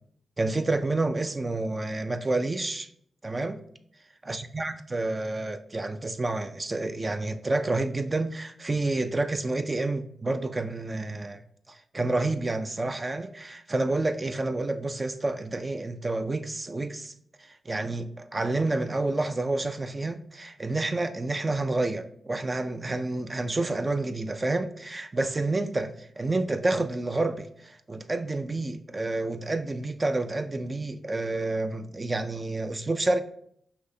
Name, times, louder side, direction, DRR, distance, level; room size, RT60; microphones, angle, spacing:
voice 1, 0.4-2.9 3.2-3.6 4.3-11.4 11.7-17.1 17.5-33.2, right 2 dB, 35° right, 0.4 m, -29 dB
5.9 x 2.7 x 2.7 m
cardioid pair, 55°, 0 cm